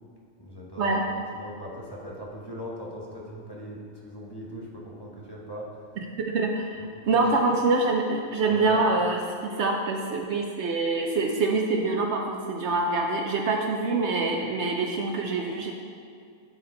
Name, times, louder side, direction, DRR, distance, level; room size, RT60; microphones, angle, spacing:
voice 1, 0.4-5.7 6.8-7.4 8.5-8.8, equal, 20° left, -5 dB, 1.0 m, -40 dB
voice 2, 6.3-15.7, right 3 dB, 65° right, 1 dB, 0.8 m, -25 dB
12.0 x 4.3 x 3.8 m, 2.3 s
omnidirectional pair, 1.4 m